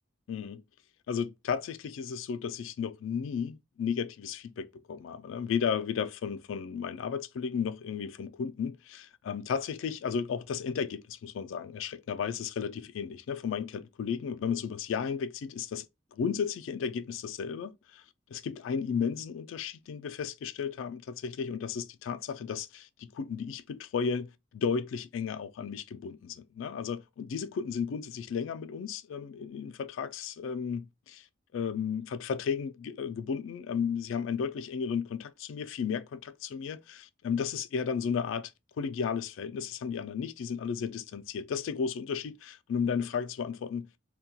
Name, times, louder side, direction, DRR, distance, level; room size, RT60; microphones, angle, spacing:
voice 1, 0.3-0.6 1.1-15.9 16.1-18.0 18.3-31.3 31.5-38.5 38.8-43.9, left 6 dB, 85° left, 0.3 m, -34 dB
2.2 x 2.2 x 2.6 m
head